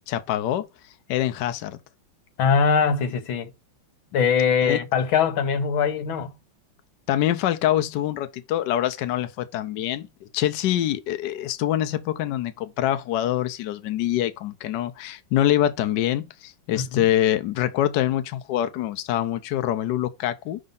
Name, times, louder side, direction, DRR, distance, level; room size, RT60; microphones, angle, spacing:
voice 1, 0.1-0.7 1.1-1.8 4.6-4.8 7.1-10.1 10.3-20.6, left 12 dB, 70° left, 1.2 m, -25 dB
voice 2, 2.4-3.5 4.1-6.4 16.7-17.1, left 6 dB, 90° left, 1.8 m, -22 dB
5.3 x 3.8 x 5.3 m
omnidirectional pair, 2.1 m